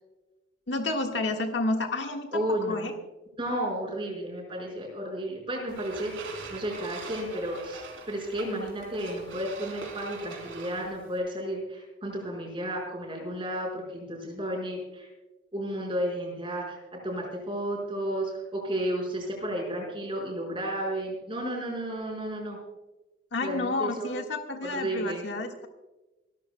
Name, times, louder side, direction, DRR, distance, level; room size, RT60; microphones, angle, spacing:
voice 1, 0.7-2.9 23.3-25.7, left 2 dB, 65° left, 3 dB, 1.6 m, -30 dB
voice 2, 2.3-2.9 3.4-15.1 15.5-22.6 23.4-24.1 24.6-25.2, right 1 dB, 25° right, 0 dB, 4.9 m, -32 dB
sound 1, 5.7-11.2, right 3 dB, 90° right, 3.8 m, -42 dB
28.5 x 13.5 x 2.2 m, 1.1 s
head